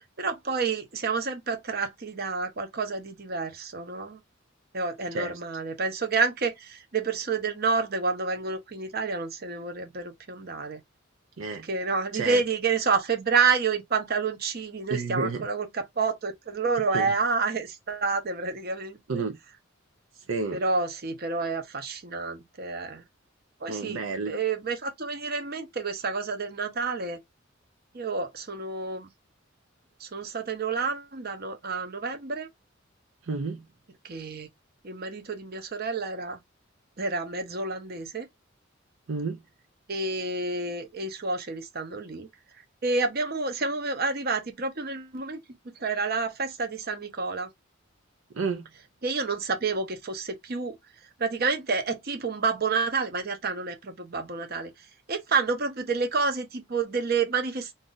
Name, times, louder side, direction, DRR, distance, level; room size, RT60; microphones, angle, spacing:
voice 1, 0.2-4.2 4.7-10.8 11.7-19.2 20.5-23.0 23.6-27.2 27.9-29.1 30.0-32.5 34.1-34.5 34.8-36.4 37.0-38.3 39.9-42.3 42.8-45.4 45.8-47.5 49.0-50.8 51.2-54.7 55.1-57.7, right 4 dB, 50° right, 0.8 m, -29 dB
voice 2, 14.9-15.5 16.8-17.2 19.1-19.4 20.3-20.6 23.7-24.4 33.2-33.6 39.1-39.4 48.3-48.7, right 4 dB, 80° right, 0.6 m, -31 dB
2.6 x 2.4 x 3.8 m
head